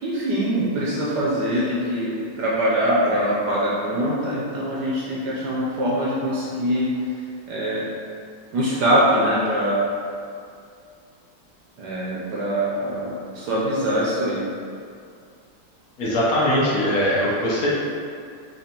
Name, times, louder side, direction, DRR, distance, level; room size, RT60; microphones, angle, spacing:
voice 1, 0.0-6.9 7.5-7.9 8.5-9.8 11.8-14.5, equal, 70° right, -6 dB, 1.1 m, -23 dB
voice 2, 16.0-17.7, equal, 65° left, -6 dB, 0.9 m, -21 dB
4.2 x 2.9 x 2.8 m, 2.4 s
omnidirectional pair, 2.1 m